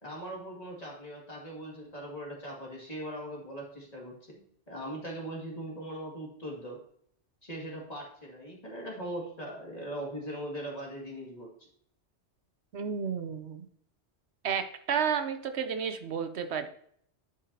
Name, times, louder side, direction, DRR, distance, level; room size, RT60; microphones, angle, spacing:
voice 1, 0.0-6.8 7.4-11.7, right 1 dB, 35° left, -2 dB, 2.2 m, -40 dB
voice 2, 12.7-13.7 14.4-16.7, right 7 dB, 70° right, 8 dB, 0.9 m, -31 dB
11.0 x 5.1 x 2.7 m, 0.65 s
omnidirectional pair, 1.2 m